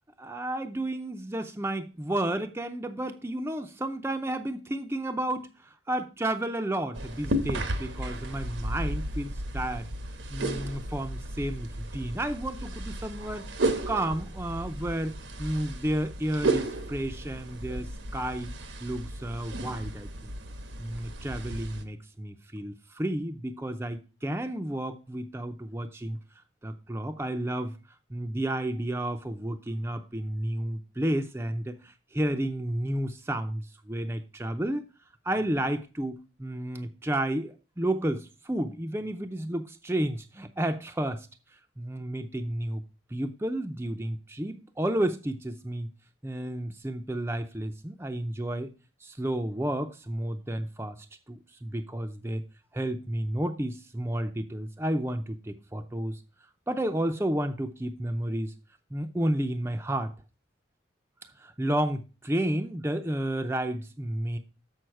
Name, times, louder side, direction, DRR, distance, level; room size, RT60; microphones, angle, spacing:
voice 1, 0.2-9.9 10.3-13.5 13.9-15.1 15.4-18.5 18.8-20.3 20.8-26.2 26.6-27.7 28.1-34.8 35.2-41.3 41.8-42.8 43.1-45.9 46.2-48.7 49.0-52.4 52.7-56.2 56.7-58.5 58.9-60.1 61.4-64.4, right 1 dB, 15° right, 6 dB, 0.5 m, -31 dB
sound 1, 6.9-21.8, right 1 dB, 85° right, 1.1 m, -34 dB
7.2 x 6.3 x 4.5 m, 0.33 s
head